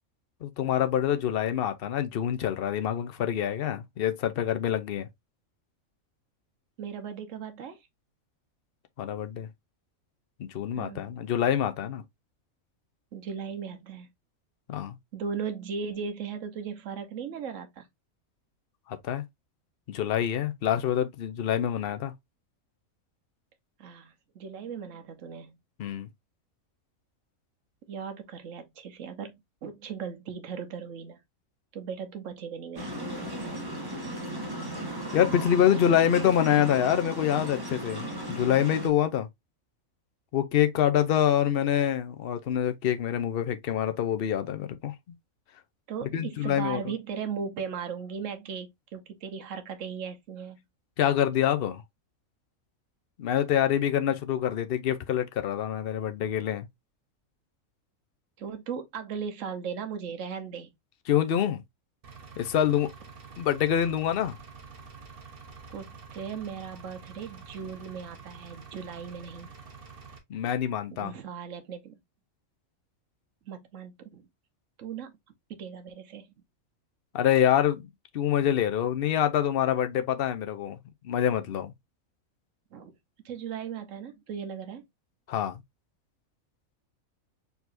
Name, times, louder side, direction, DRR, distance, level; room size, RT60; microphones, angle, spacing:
voice 1, 0.4-5.1 9.0-9.5 10.4-12.0 14.7-15.0 18.9-19.2 19.9-22.1 25.8-26.1 35.1-39.3 40.3-44.9 46.1-46.8 51.0-51.8 53.2-56.7 61.1-61.6 62.4-62.9 63.4-64.4 70.3-71.1 77.1-77.9 78.1-80.8 81.0-81.7 85.3-85.6, left 10 dB, 55° left, 0.7 m, -26 dB
voice 2, 6.8-7.8 10.8-11.0 13.1-14.1 15.1-17.9 23.8-25.6 27.9-31.2 31.7-33.3 35.7-35.9 45.9-50.6 58.4-60.7 65.7-69.5 70.9-72.0 73.5-74.3 74.8-75.1 75.6-76.3 82.7-82.9 83.2-84.8, right 6 dB, 65° right, 1.3 m, -37 dB
sound 1, 32.7-38.9, right 1 dB, 20° right, 1.1 m, -36 dB
Engine, 62.0-70.2, right 5 dB, 45° right, 1.2 m, -47 dB
4.7 x 4.1 x 2.6 m
omnidirectional pair, 1.5 m